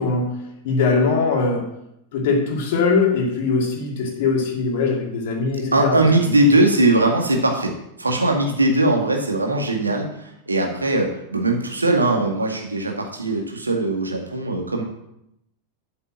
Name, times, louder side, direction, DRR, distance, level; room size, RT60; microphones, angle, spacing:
voice 1, 0.0-1.8 2.1-6.3, left 4 dB, 55° left, 1 dB, 2.3 m, -21 dB
voice 2, 5.7-7.7 8.0-14.8, right 2 dB, 80° right, 2 dB, 2.0 m, -20 dB
8.5 x 6.8 x 7.4 m, 0.80 s
figure-of-eight pair, 90°, 0 cm